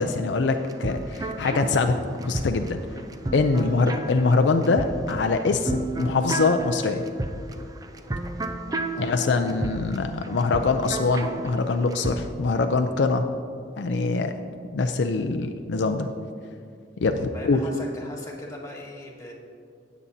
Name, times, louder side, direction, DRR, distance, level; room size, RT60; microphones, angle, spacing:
voice 1, 0.0-2.8 3.3-7.0 9.0-13.3 13.8-14.3 14.7-16.1 17.0-17.6, left 3 dB, 70° left, 6 dB, 0.5 m, -23 dB
sound 1, 0.6-12.2, right 2 dB, 20° right, 0.4 m, -32 dB
voice 2, 17.3-19.3, left 1 dB, 20° left, -3 dB, 1.6 m, -40 dB
17.0 x 7.2 x 2.7 m, 2.4 s
head